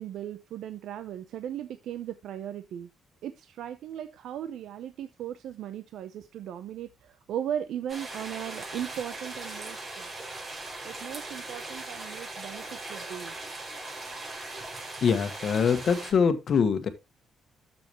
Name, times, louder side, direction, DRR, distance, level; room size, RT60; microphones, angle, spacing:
voice 1, 0.0-2.9 3.2-10.1 10.8-13.3, right 10 dB, 75° right, 0.7 m, -37 dB
sound 1, 7.9-16.1, right 2 dB, 30° right, 4.4 m, -39 dB
voice 2, 15.0-16.9, left 6 dB, 50° left, 1.4 m, -24 dB
12.0 x 6.9 x 3.0 m
cardioid pair, 140°, 0 cm